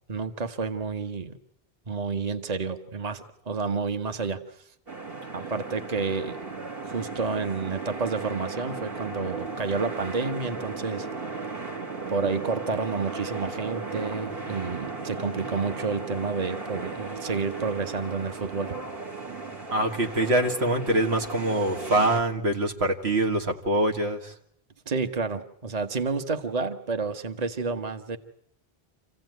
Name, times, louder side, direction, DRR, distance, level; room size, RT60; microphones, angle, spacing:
voice 1, 0.1-1.4 1.9-4.4 5.3-6.4 6.8-11.1 12.1-18.7 24.9-28.2, right 4 dB, 40° right, 7 dB, 1.2 m, -30 dB
sound 1, 4.9-22.2, right 4 dB, 65° right, 2.6 m, -36 dB
voice 2, 19.7-24.3, right 1 dB, 90° right, 3 dB, 2.2 m, -24 dB
27.5 x 16.0 x 9.3 m, 0.73 s
omnidirectional pair, 1.1 m